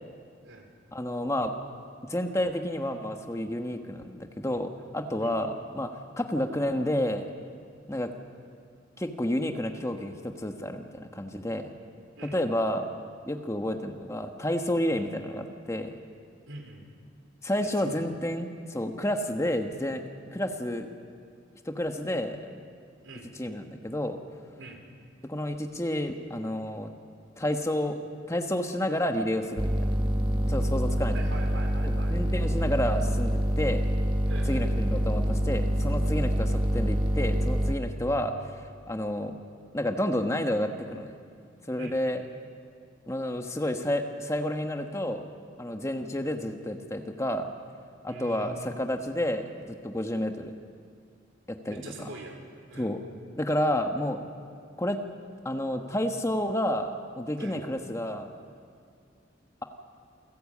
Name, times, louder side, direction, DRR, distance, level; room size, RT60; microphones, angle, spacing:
voice 1, 0.9-1.5 2.1-5.9 6.2-7.3 7.9-8.1 9.0-11.6 12.2-12.8 13.3-15.9 17.4-20.0 20.3-20.9 21.6-22.4 23.4-24.2 25.3-26.9 27.4-28.0 28.3-29.9 30.5-31.4 31.8-33.8 34.5-39.4 39.7-41.2 41.7-42.2 43.1-45.3 45.6-47.5 48.0-50.5 51.5-52.1 52.8-53.0 53.4-54.2 54.8-55.0 55.4-58.3, left 1 dB, 15° left, 5 dB, 1.3 m, -30 dB
voice 2, 16.5-16.9 17.6-18.0 23.0-23.4 24.6-24.8 31.1-32.2 34.3-34.7 41.8-42.0 48.1-48.5 51.6-52.4 52.7-52.9 57.4-57.6, right 2 dB, 85° right, 3 dB, 3.4 m, -43 dB
sound 1, 29.6-37.8, equal, 25° right, 1.1 m, -26 dB
28.0 x 12.5 x 8.5 m, 2.2 s
head